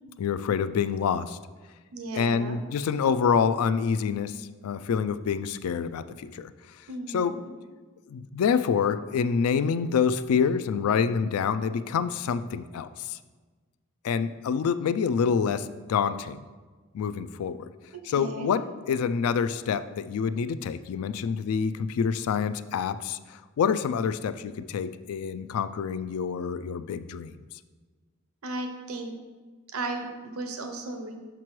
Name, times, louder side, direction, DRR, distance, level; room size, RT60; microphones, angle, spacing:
voice 1, 0.2-1.4 2.1-6.5 7.1-7.4 8.1-13.2 14.0-16.4 16.9-17.7 18.0-23.2 23.6-27.4, left 6 dB, 90° left, 13 dB, 0.3 m, -27 dB
voice 2, 1.9-2.6 6.9-7.5 18.1-18.5 28.4-29.1 29.7-31.1, right 2 dB, 90° right, 4 dB, 0.7 m, -35 dB
6.0 x 5.8 x 3.1 m, 1.4 s
head